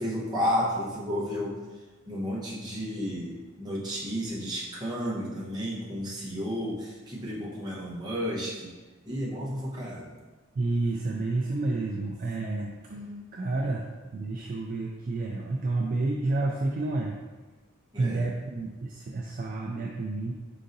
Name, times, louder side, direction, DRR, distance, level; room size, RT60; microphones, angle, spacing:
voice 1, 0.0-1.6 2.1-8.7 9.0-10.1 17.9-18.2, equal, 20° right, -6 dB, 0.9 m, -32 dB
voice 2, 10.6-13.8 14.1-17.2 18.0-20.3, right 2 dB, 40° right, -1 dB, 0.3 m, -30 dB
4.7 x 4.0 x 2.6 m, 1.3 s
head